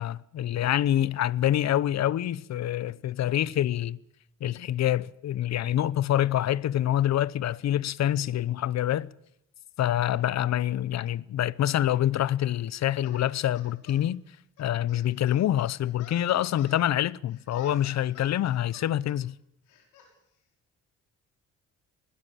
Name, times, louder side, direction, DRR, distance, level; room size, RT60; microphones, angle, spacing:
voice 1, 0.0-4.0 4.4-9.1 9.8-14.2 14.6-19.3, left 12 dB, 65° left, 0.8 m, -26 dB
sound 1, 13.0-14.0 14.6-16.8 17.3-19.2 19.7-20.1, left 6 dB, 85° left, 6.3 m, -51 dB
20.0 x 19.5 x 7.5 m
cardioid pair, 90°, 30 cm